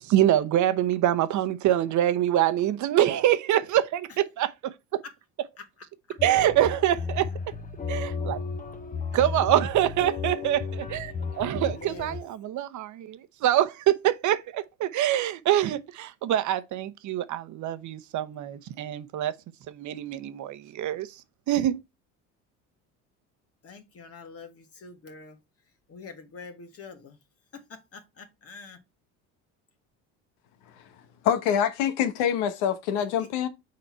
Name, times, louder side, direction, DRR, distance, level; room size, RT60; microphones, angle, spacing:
voice 1, 0.0-5.0 6.2-7.5 7.9-8.4 9.1-19.3 19.7-21.2 21.5-21.8, right 12 dB, 55° right, 0.9 m, -25 dB
sound 1, 6.2-12.2, left 5 dB, 25° left, 1.0 m, -34 dB
voice 2, 11.7-12.2 23.6-25.4 25.9-27.2 27.5-28.8 33.0-33.3, left 4 dB, 40° left, 1.5 m, -45 dB
voice 3, 31.2-33.5, left 9 dB, 85° left, 1.1 m, -25 dB
6.6 x 4.2 x 4.4 m
supercardioid pair, 90°, 35 cm